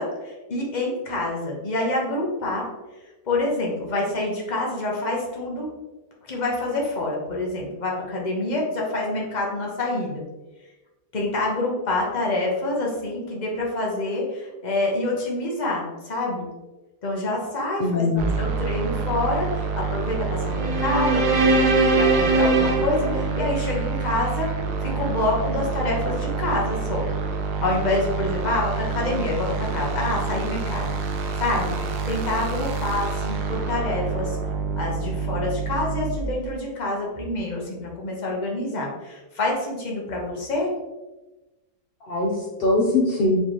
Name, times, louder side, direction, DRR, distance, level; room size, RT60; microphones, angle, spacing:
voice 1, 0.0-2.7 3.3-5.7 6.2-10.2 11.1-16.4 17.0-24.5 24.8-27.1 27.6-31.0 31.4-31.8 32.1-34.4 34.8-40.7, left 2 dB, 35° left, -2 dB, 0.9 m, -27 dB
voice 2, 17.8-18.3 42.0-43.4, left 2 dB, 60° left, -2 dB, 0.6 m, -22 dB
sound 1, 18.2-36.2, right 4 dB, 75° right, 1.2 m, -28 dB
sound 2, 20.5-23.9, right 2 dB, 60° right, 0.5 m, -21 dB
4.6 x 3.4 x 2.9 m, 1.1 s
omnidirectional pair, 1.8 m